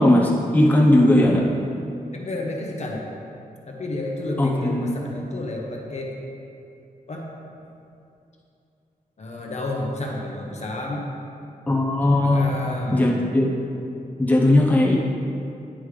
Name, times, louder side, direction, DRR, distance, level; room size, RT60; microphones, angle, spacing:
voice 1, 0.0-1.4 4.4-4.9 11.7-12.5 12.9-13.5 14.2-15.0, left 1 dB, 10° left, -4 dB, 0.9 m, -18 dB
voice 2, 2.1-3.0 3.7-6.1 7.1-7.3 9.2-11.1 12.2-13.1, left 1 dB, 50° left, -1 dB, 0.9 m, -30 dB
9.9 x 5.5 x 3.3 m, 2.6 s
wide cardioid pair, 120°, 15 cm